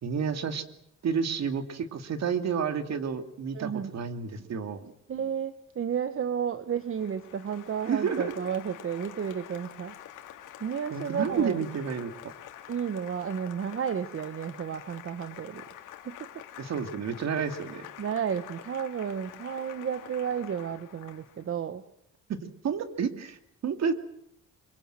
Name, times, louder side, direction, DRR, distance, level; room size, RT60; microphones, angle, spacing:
voice 1, 0.0-0.6 1.0-4.9 7.9-8.3 10.9-12.1 16.6-17.9 22.3-23.4 23.6-23.9, right 6 dB, 60° right, 9 dB, 2.5 m, -30 dB
voice 2, 3.5-3.9 5.1-9.9 10.6-11.6 12.7-15.6 16.0-16.2 18.0-21.8, right 7 dB, 45° right, 12 dB, 1.3 m, -32 dB
Applause, 6.7-21.5, left 12 dB, 85° left, 2.5 m, -47 dB
25.5 x 23.0 x 7.7 m, 0.75 s
cardioid pair, 90°, 30 cm